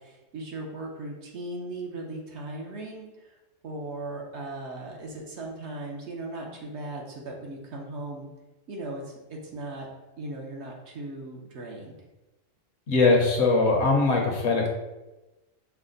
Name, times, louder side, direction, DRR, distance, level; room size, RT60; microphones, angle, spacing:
voice 1, 0.0-3.4 3.6-8.3 8.7-9.9 10.2-11.9, right 2 dB, 65° right, 0 dB, 1.0 m, -38 dB
voice 2, 12.9-14.7, left 3 dB, 60° left, 1 dB, 1.0 m, -21 dB
5.6 x 2.1 x 3.8 m, 1.1 s
omnidirectional pair, 1.3 m